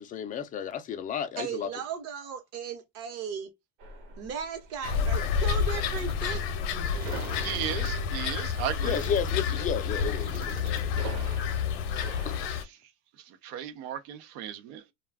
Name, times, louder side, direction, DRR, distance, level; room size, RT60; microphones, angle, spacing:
voice 1, 0.0-1.7 8.8-10.9 12.2-12.4, left 8 dB, 25° left, 0.4 m, -32 dB
voice 2, 1.4-3.5 4.2-6.4 6.9-7.4, right 7 dB, 45° right, 1.0 m, -37 dB
sound 1, 3.8-12.5, right 2 dB, 90° right, 1.2 m, -44 dB
sound 2, 4.8-12.6, left 7 dB, 75° left, 0.7 m, -29 dB
sound 3, 4.8-11.4, right 5 dB, 25° right, 0.6 m, -43 dB
voice 3, 7.4-9.0 9.5-9.6 12.5-12.6 13.4-14.9, right 10 dB, 70° right, 0.8 m, -35 dB
2.3 x 2.2 x 3.4 m
cardioid pair, 140°, 34 cm